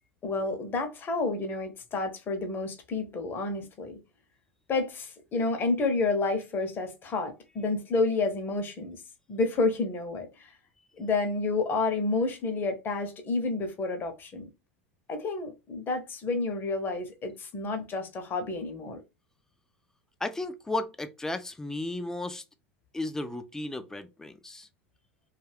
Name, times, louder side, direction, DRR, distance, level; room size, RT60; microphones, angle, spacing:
voice 1, 0.2-4.0 4.7-9.0 9.3-10.5 11.0-14.5 15.1-19.0, left 3 dB, 30° left, 0.8 m, -30 dB
voice 2, 20.2-22.4 22.9-24.7, left 2 dB, 10° left, 0.4 m, -34 dB
2.3 x 2.3 x 3.3 m
hypercardioid pair, 95°, 7 cm